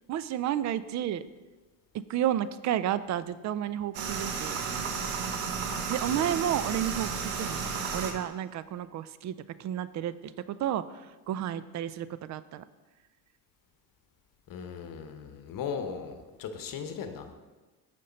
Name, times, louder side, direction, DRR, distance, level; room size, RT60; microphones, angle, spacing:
voice 1, 0.1-1.2 2.1-4.6 5.9-7.6 7.9-10.8 11.3-12.6, right 11 dB, 40° right, 16 dB, 0.4 m, -31 dB
sound 1, 3.9-8.1, right 5 dB, 75° right, 1.1 m, -33 dB
voice 2, 14.5-17.3, left 6 dB, 50° left, 7 dB, 1.0 m, -38 dB
6.7 x 5.2 x 5.2 m, 1.2 s
supercardioid pair, 85°, 44 cm